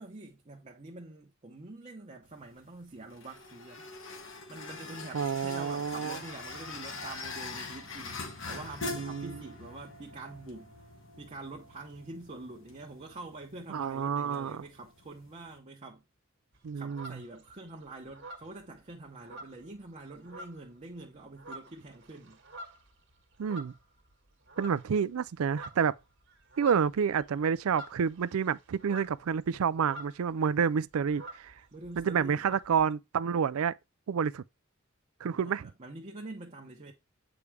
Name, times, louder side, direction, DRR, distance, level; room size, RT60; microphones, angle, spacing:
voice 1, 0.0-3.9 4.5-8.2 8.5-10.7 11.2-16.0 16.7-22.4 31.7-32.5 35.2-36.9, right 2 dB, 35° right, 0.9 m, -46 dB
sound 1, 2.2-15.6, left 3 dB, 65° left, 1.7 m, -44 dB
voice 2, 5.1-6.2 8.9-9.4 13.7-14.6 16.6-17.1 23.4-23.7 24.6-25.9 26.6-31.5 32.0-33.7 34.1-34.4 35.2-35.7, right 7 dB, 80° right, 0.4 m, -29 dB
sound 2, 16.5-17.7 18.1-19.9 20.2-20.8 21.2-24.1 24.5-25.0 25.3-30.4 30.6-30.7 30.9-32.8, right 1 dB, 60° right, 1.5 m, -48 dB
8.3 x 4.8 x 3.3 m
head